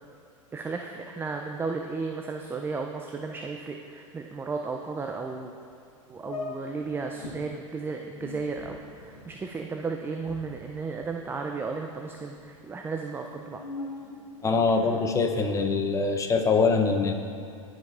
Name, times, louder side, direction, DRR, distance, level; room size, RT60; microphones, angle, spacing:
voice 1, 0.5-5.5 6.1-13.6, right 4 dB, 15° right, 3 dB, 0.3 m, -34 dB
sound 1, 5.7-5.8 6.2-7.4 8.0-11.5 11.8-12.5 13.1-15.1, left 3 dB, 90° left, 1.3 m, -42 dB
voice 2, 14.4-17.1, left 4 dB, 20° left, 4 dB, 0.7 m, -23 dB
13.5 x 5.5 x 2.4 m, 2.4 s
hypercardioid pair, 100°, 17 cm